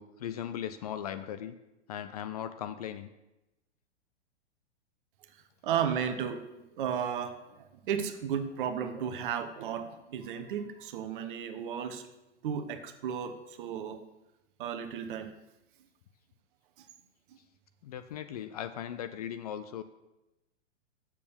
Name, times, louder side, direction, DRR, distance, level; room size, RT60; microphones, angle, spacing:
voice 1, 0.0-1.6 1.9-3.1 17.8-19.8, left 10 dB, 35° left, 11 dB, 0.4 m, -38 dB
voice 2, 5.6-6.4 6.8-12.0 12.4-14.0 14.6-15.3, right 8 dB, 45° right, 8 dB, 1.0 m, -34 dB
7.2 x 6.7 x 7.0 m, 0.96 s
figure-of-eight pair, 110°, 35 cm